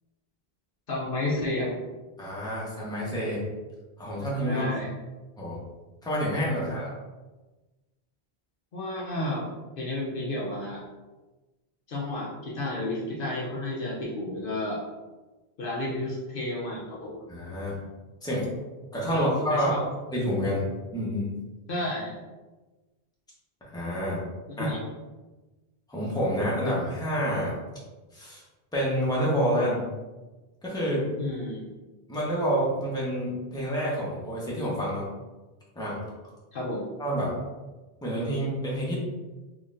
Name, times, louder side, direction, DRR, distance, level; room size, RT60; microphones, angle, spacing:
voice 1, 0.9-1.7 4.5-4.9 8.7-9.5 9.8-10.8 11.9-14.8 15.6-17.2 19.1-19.8 21.7-22.1 24.6-24.8 31.2-31.7 36.5-36.9, left 1 dB, 65° left, -4 dB, 0.9 m, -31 dB
voice 2, 2.2-3.4 4.0-4.8 5.4-5.6 6.0-6.9 17.3-17.8 18.2-18.4 18.9-19.7 20.1-21.3 23.6-24.2 24.6-24.7 25.9-27.6 28.1-28.4 28.7-29.8 30.6-31.1 32.1-35.0 35.8-36.0 37.0-37.3 38.0-39.0, equal, 5° left, -7 dB, 1.0 m, -28 dB
3.8 x 3.1 x 2.5 m, 1.2 s
omnidirectional pair, 1.0 m